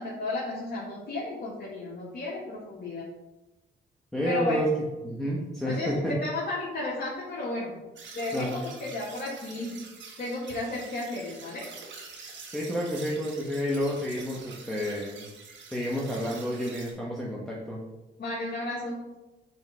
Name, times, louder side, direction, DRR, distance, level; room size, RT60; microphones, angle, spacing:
voice 1, 0.0-3.1 4.3-4.6 5.6-7.7 8.2-9.8 10.2-11.6 18.2-19.2, left 2 dB, 50° left, -6 dB, 1.8 m, -33 dB
voice 2, 4.1-4.7 5.0-6.2 8.3-8.7 12.5-15.3 15.7-17.8, equal, ahead, -5 dB, 1.2 m, -30 dB
sound 1, 8.0-16.9, right 5 dB, 65° right, 1.3 m, -46 dB
8.0 x 3.7 x 3.5 m, 1.0 s
cardioid pair, 90°, 20 cm